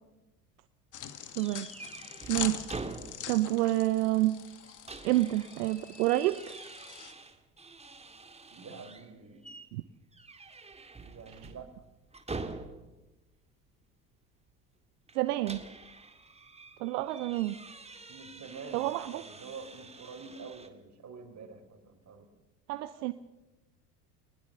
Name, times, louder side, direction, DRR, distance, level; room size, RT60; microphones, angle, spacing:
sound 1, 0.9-7.1, left 9 dB, 40° left, 1.8 m, -43 dB
sound 2, 1.4-3.5 3.8-3.9 4.5-9.1 9.4-9.7 10.1-13.0 15.1-20.7, right 3 dB, 15° right, 2.1 m, -46 dB
voice 1, 1.4-1.7 2.3-2.7 3.3-4.4 5.0-6.5 9.7-9.8 15.1-15.6 16.8-17.6 18.7-19.2 22.7-23.1, right 16 dB, 70° right, 13 dB, 0.9 m, -28 dB
voice 2, 8.5-9.5 11.0-11.7 18.1-22.3, right 5 dB, 35° right, 4 dB, 4.7 m, -47 dB
21.0 x 20.5 x 7.0 m, 1.0 s
hypercardioid pair, 70°, 48 cm